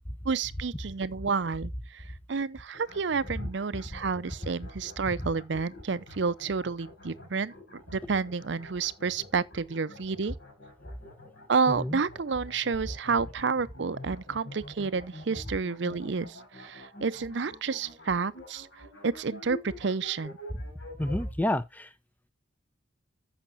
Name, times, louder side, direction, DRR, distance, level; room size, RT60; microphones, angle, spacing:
voice 1, 0.2-7.5 7.9-10.3 11.5-18.7 19.0-20.4, right 5 dB, 65° right, 0.6 m, -30 dB
sound 1, 2.7-21.3, left 2 dB, 65° left, 5.1 m, -47 dB
voice 2, 21.0-21.9, left 1 dB, 10° left, 0.6 m, -29 dB
14.5 x 5.9 x 2.6 m
head